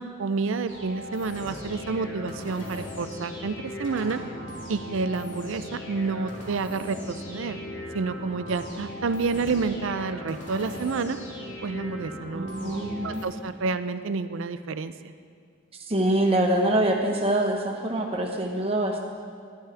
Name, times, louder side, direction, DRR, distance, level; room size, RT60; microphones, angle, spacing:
voice 1, 0.0-4.2 4.7-7.6 7.9-11.2 11.6-15.1, right 4 dB, 70° right, 12 dB, 0.4 m, -29 dB
sound 1, 0.7-13.3, left 1 dB, 60° left, 2.7 m, -38 dB
voice 2, 12.3-13.2 15.9-19.0, right 1 dB, 30° right, 1 dB, 1.1 m, -24 dB
12.0 x 11.5 x 3.4 m, 2.2 s
head